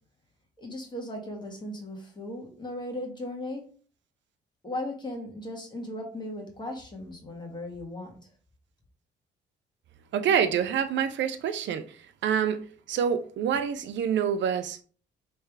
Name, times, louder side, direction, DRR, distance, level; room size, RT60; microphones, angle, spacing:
voice 1, 0.6-3.7 4.6-8.2, left 1 dB, 20° left, 1.7 m, -37 dB
voice 2, 10.1-11.9 12.2-14.8, right 8 dB, 70° right, 0.5 m, -26 dB
3.5 x 3.2 x 4.7 m
cardioid pair, 90°, 20 cm